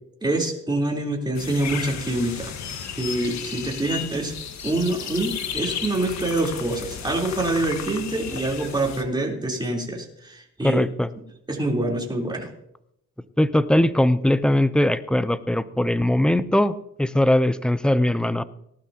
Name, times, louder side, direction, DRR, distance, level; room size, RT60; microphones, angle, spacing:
voice 1, 0.2-4.3 4.6-10.8 11.5-12.5, right 2 dB, 15° right, -1 dB, 3.8 m, -26 dB
sound 1, 1.3-9.0, left 8 dB, 65° left, 1.5 m, -34 dB
voice 2, 10.6-11.1 13.4-16.7 17.0-18.4, left 1 dB, 5° left, 14 dB, 0.6 m, -20 dB
19.0 x 12.0 x 2.9 m, 0.77 s
cardioid pair, 90°, 30 cm